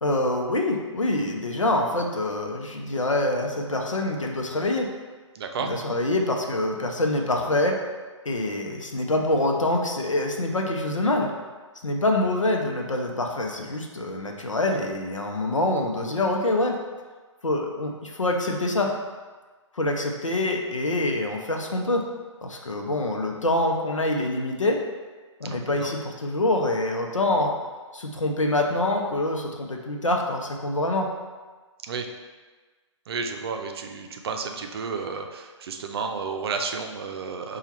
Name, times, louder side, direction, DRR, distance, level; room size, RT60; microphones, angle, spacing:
voice 1, 0.0-4.9 5.6-7.8 8.2-11.3 11.8-16.7 17.4-18.9 19.7-22.0 22.4-24.8 25.4-27.5 27.9-31.1, left 2 dB, 90° left, 2 dB, 0.7 m, -25 dB
voice 2, 5.3-5.7 25.4-25.9 31.9-32.1 33.1-37.6, right 5 dB, 50° right, 4 dB, 0.5 m, -32 dB
4.5 x 2.4 x 4.1 m, 1.4 s
figure-of-eight pair, 130°, 16 cm